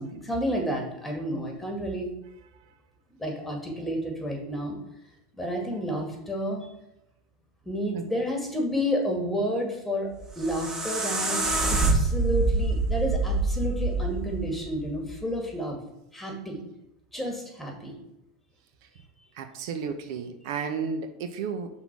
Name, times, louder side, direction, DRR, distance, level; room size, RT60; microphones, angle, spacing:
voice 1, 0.0-2.1 3.2-4.8 5.4-6.7 7.7-10.1 10.4-15.8 16.1-16.6 17.1-17.9, equal, 5° left, 1 dB, 2.2 m, -30 dB
sound 1, 10.1-15.2, right 3 dB, 25° right, 1.7 m, -26 dB
voice 2, 19.3-21.8, right 6 dB, 65° right, 7 dB, 0.8 m, -33 dB
5.9 x 3.8 x 6.1 m, 0.86 s
supercardioid pair, 115°, 2 cm